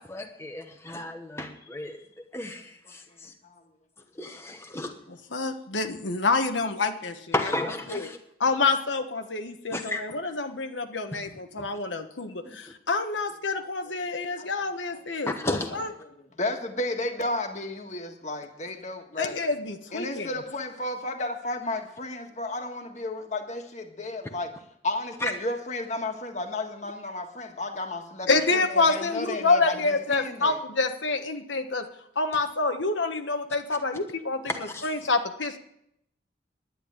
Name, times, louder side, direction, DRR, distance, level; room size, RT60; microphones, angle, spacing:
voice 1, 0.0-2.0 2.3-3.3 4.2-4.9 7.3-8.2 9.7-10.0 11.1-11.2 11.6-11.7 15.3-15.9 25.2-25.3 34.5-34.9, left 2 dB, 15° left, 4 dB, 1.0 m, -33 dB
voice 2, 5.3-7.2 7.9-8.1 8.4-15.9 19.2-20.3 28.3-31.8 32.2-35.6, left 3 dB, 90° left, 6 dB, 1.3 m, -27 dB
voice 3, 12.2-12.5 13.6-13.7 14.0-15.0 16.2-19.4 19.9-24.5 24.8-30.6, left 2 dB, 40° left, 4 dB, 1.7 m, -33 dB
11.0 x 10.0 x 9.0 m, 0.76 s
head